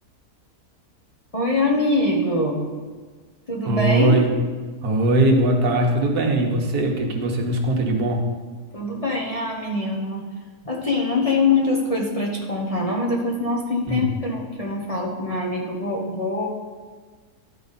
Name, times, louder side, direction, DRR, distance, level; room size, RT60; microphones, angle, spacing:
voice 1, 1.3-2.7 3.5-4.2 8.7-10.2 10.6-16.5, left 2 dB, 30° left, -2 dB, 0.9 m, -23 dB
voice 2, 3.6-4.3 4.8-8.2 13.9-14.1, right 1 dB, 85° right, 2 dB, 1.6 m, -20 dB
12.5 x 4.9 x 4.1 m, 1.5 s
omnidirectional pair, 1.6 m